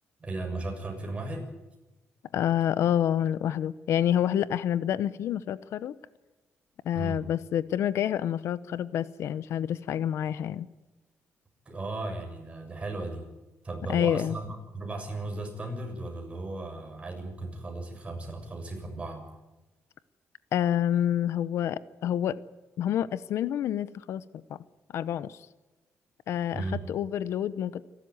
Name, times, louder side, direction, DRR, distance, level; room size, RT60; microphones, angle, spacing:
voice 1, 0.2-1.5 6.9-7.2 11.7-13.2 13.6-19.3 26.5-26.8, right 2 dB, 25° right, 3 dB, 6.9 m, -36 dB
voice 2, 2.3-6.0 6.8-10.7 13.9-14.3 20.5-22.4 22.8-24.2 24.5-24.6 24.9-25.4 26.3-27.9, left 10 dB, 80° left, 16 dB, 0.9 m, -28 dB
28.0 x 13.0 x 9.6 m, 1.1 s
cardioid pair, 105°, 5 cm